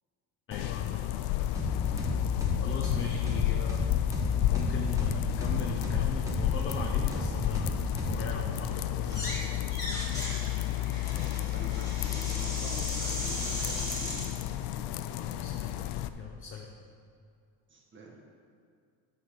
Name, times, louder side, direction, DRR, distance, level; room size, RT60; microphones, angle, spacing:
sound 1, 0.5-16.1, left 13 dB, 75° left, 0.6 m, -31 dB
voice 1, 0.5-1.5 1.8-2.0 2.6-3.9 4.5-9.6 15.2-15.9 16.2-16.7, left 5 dB, 30° left, 0 dB, 0.9 m, -39 dB
sound 2, 1.6-8.7, equal, 10° right, 1.7 m, -34 dB
sound 3, 9.0-9.4 9.7-14.3, equal, 10° left, 2.9 m, -37 dB
voice 2, 11.1-14.3 17.7-18.2, right 2 dB, 30° right, 0 dB, 1.8 m, -46 dB
9.5 x 6.4 x 6.7 m, 2.3 s
cardioid pair, 135°, 41 cm